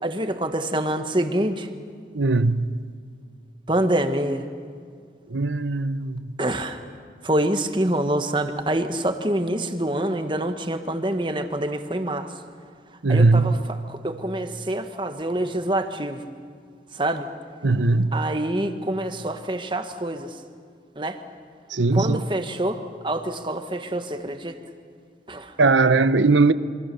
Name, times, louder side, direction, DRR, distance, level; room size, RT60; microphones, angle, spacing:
voice 1, 0.0-1.7 3.7-4.5 6.4-6.8 7.2-12.3 13.1-16.2 16.9-17.3 18.1-20.4 20.9-21.2 21.9-24.6 25.3-25.5, right 1 dB, 25° right, 1.5 m, -26 dB
voice 2, 2.1-2.8 5.3-6.3 13.0-13.6 17.6-18.2 21.7-22.2 25.6-26.5, right 3 dB, 90° right, 0.9 m, -19 dB
27.5 x 25.0 x 7.0 m
head